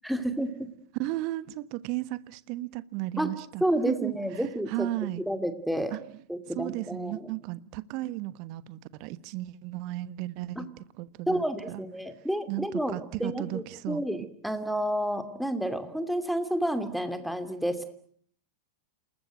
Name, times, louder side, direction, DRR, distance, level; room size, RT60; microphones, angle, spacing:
voice 1, 0.0-0.7 3.2-3.3 3.6-4.9 5.3-5.9 6.3-7.3 10.6-10.7 11.3-17.8, equal, ahead, 2.7 m, -30 dB
voice 2, 1.0-5.2 5.9-6.0 6.5-11.8 12.5-14.0, right 16 dB, 45° right, 1.2 m, -35 dB
28.5 x 20.5 x 9.2 m
figure-of-eight pair, 90°, 0 cm